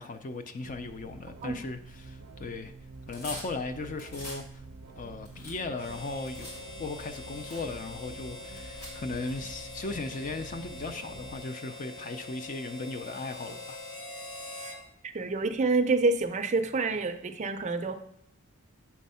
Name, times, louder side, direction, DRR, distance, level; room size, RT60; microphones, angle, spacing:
voice 1, 0.0-2.7 3.1-4.4 5.0-6.5 6.8-13.8, left 3 dB, 35° left, 8 dB, 0.4 m, -37 dB
sound 1, 0.6-11.4, right 3 dB, 80° right, 0.6 m, -48 dB
sound 2, 2.9-4.4 4.9-6.6 7.1-7.2 7.5-7.7 8.5-9.4, left 1 dB, 85° left, 3.1 m, -44 dB
Harmonica, 5.7-14.8, left 2 dB, 60° left, 1.2 m, -44 dB
voice 2, 15.0-18.0, right 3 dB, 30° right, 8 dB, 0.4 m, -27 dB
7.4 x 3.4 x 5.5 m, 0.73 s
head